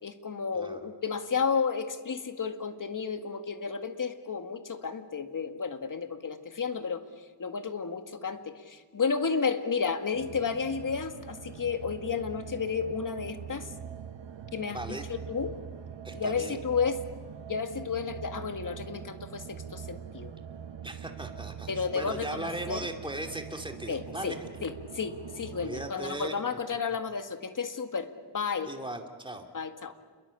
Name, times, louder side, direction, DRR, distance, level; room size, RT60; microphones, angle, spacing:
voice 1, 0.0-7.0 7.4-13.7 14.5-15.6 16.1-17.0 17.5-20.3 21.7-22.9 23.9-28.7 29.5-29.9, left 5 dB, 45° left, 8 dB, 2.0 m, -32 dB
sound 1, 10.1-25.9, right 8 dB, 80° right, 1.3 m, -43 dB
voice 2, 14.7-15.0 16.0-16.6 20.8-24.5 25.6-26.4 28.7-29.4, right 1 dB, 10° right, 4 dB, 2.8 m, -38 dB
29.5 x 22.0 x 8.5 m, 1.4 s
wide cardioid pair, 125°, 43 cm